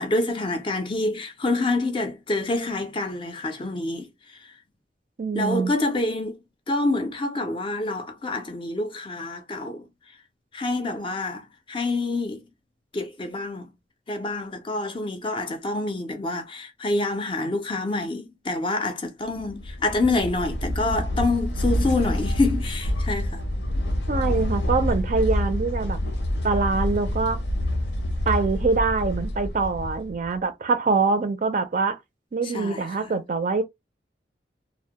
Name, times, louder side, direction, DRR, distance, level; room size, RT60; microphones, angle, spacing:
voice 1, 0.0-4.5 5.3-6.4 6.7-9.9 10.5-12.5 12.9-13.7 14.1-23.4 32.4-33.1, left 2 dB, 30° left, 0.4 m, -27 dB
voice 2, 5.2-5.7 24.1-26.0 26.4-27.4 28.3-32.0 32.3-33.6, right 4 dB, 45° right, 0.4 m, -24 dB
sound 1, 19.4-30.4, left 1 dB, 75° left, 0.6 m, -27 dB
2.1 x 2.1 x 2.8 m
head